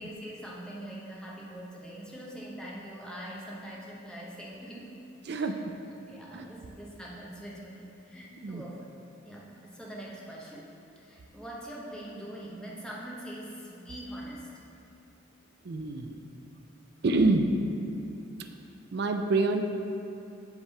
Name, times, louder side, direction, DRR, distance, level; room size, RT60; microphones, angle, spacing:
voice 1, 0.0-4.9 5.3-5.6 6.1-8.9 9.2-10.7 11.0-14.5, right 1 dB, 5° left, -5 dB, 0.8 m, -43 dB
voice 2, 5.3-5.7 6.3-6.5 8.4-8.6 15.6-16.2 17.0-17.5 18.9-19.6, right 3 dB, 55° right, 5 dB, 0.4 m, -26 dB
8.1 x 3.3 x 5.7 m, 2.8 s
head